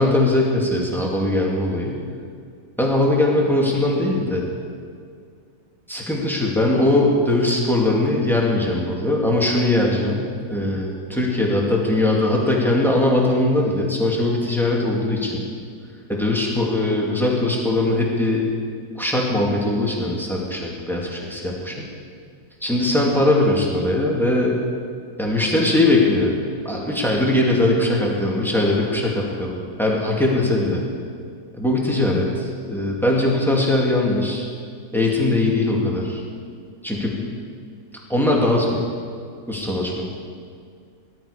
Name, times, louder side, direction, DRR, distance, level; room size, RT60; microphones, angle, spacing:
voice 1, 0.0-2.0 2.8-4.4 5.9-15.5 16.1-18.4 19.0-21.8 22.6-24.6 25.2-26.3 26.6-30.8 31.5-34.5 34.9-36.2 36.8-37.2 38.1-38.8 39.5-40.0, left 1 dB, ahead, -3 dB, 2.3 m, -20 dB
19.5 x 12.0 x 5.1 m, 2.2 s
omnidirectional pair, 2.0 m